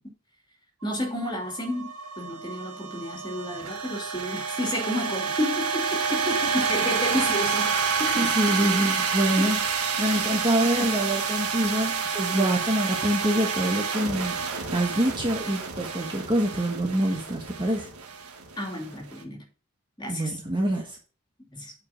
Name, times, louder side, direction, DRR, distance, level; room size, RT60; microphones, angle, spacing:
voice 1, 0.8-1.9 2.2-6.2 6.5-8.3 9.4-9.5 10.2-10.4 10.7-10.9 12.3-12.6 18.6-19.4 20.0-20.3 21.5-21.7, left 1 dB, 20° left, 2.9 m, -31 dB
sound 1, 0.8-19.1, right 6 dB, 90° right, 1.6 m, -29 dB
voice 2, 6.0-6.5 8.0-9.6 10.0-17.9 20.1-21.0, right 1 dB, 20° right, 1.4 m, -26 dB
8.4 x 5.1 x 6.0 m
head